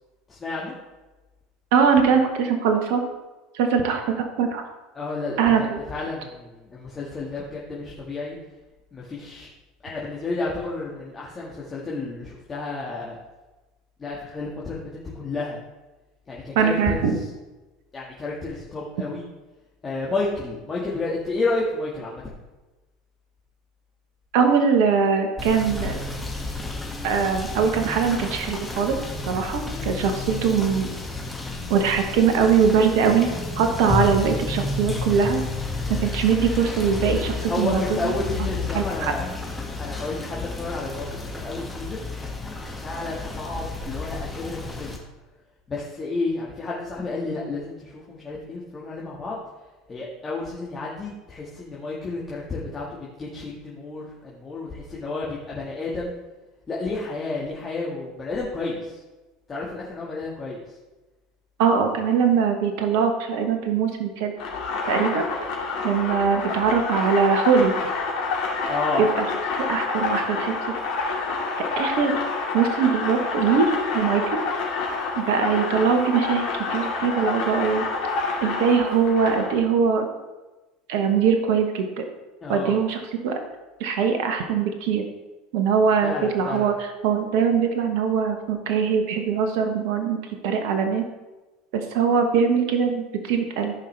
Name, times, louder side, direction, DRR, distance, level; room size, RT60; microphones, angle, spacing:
voice 1, 0.3-0.7 5.0-8.4 8.9-9.5 9.8-13.2 14.0-15.6 16.3-17.0 17.9-19.2 19.8-22.2 29.7-29.9 37.5-39.3 39.8-42.4 42.8-44.9 45.7-49.4 49.9-56.1 56.7-59.0 59.5-60.6 68.7-69.0 82.4-82.7 86.0-86.7, left 3 dB, 25° left, -5 dB, 1.9 m, -31 dB
voice 2, 1.7-3.0 3.5-4.6 5.4-5.8 16.5-17.2 24.3-26.0 27.0-29.0 29.3-30.9 31.7-33.3 33.6-35.4 36.0-38.1 38.7-39.1 61.6-64.3 64.9-65.3 65.8-67.8 69.0-69.2 69.7-70.7 71.8-72.1 72.5-74.4 75.2-76.4 76.7-77.8 78.4-80.1 80.9-82.0 82.5-83.4 83.8-85.0 85.5-91.0 91.7-93.7, right 6 dB, 65° right, 5 dB, 1.2 m, -22 dB
Rain / Motor vehicle (road), 25.4-45.0, left 3 dB, 10° left, 1.9 m, -31 dB
sound 1, 64.4-79.6, left 4 dB, 60° left, 2.3 m, -28 dB
13.5 x 5.5 x 3.4 m, 1.1 s
hypercardioid pair, 75°, 0 cm